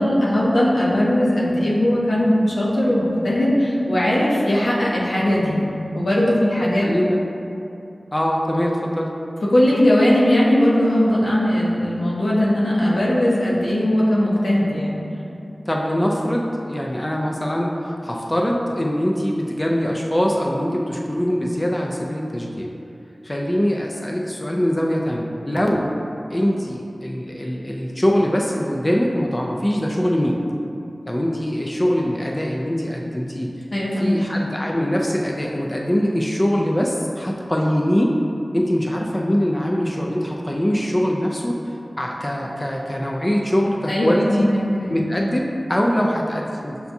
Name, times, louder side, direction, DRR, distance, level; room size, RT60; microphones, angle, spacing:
voice 1, 0.0-5.6 5.9-6.9 9.5-15.0 33.7-34.3 43.9-45.0, left 1 dB, 85° left, -6 dB, 0.8 m, -19 dB
voice 2, 6.8-7.2 8.1-9.1 15.7-22.7 23.2-25.9 26.3-30.4 31.1-33.5 34.0-38.1 38.5-44.5 44.9-46.9, equal, 25° left, -1 dB, 0.3 m, -22 dB
6.8 x 2.3 x 2.6 m, 2.7 s
wide cardioid pair, 60°, 0 cm